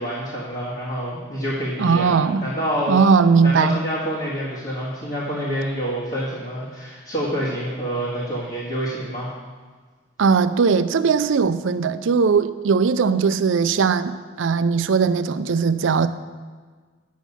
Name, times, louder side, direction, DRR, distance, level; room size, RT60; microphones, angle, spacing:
voice 1, 0.0-3.0 3.4-9.3, equal, 45° left, 1.8 m, -27 dB
voice 2, 1.8-2.4 2.9-3.8 10.2-16.1, right 5 dB, 75° right, 0.4 m, -19 dB
9.3 x 6.2 x 5.6 m
head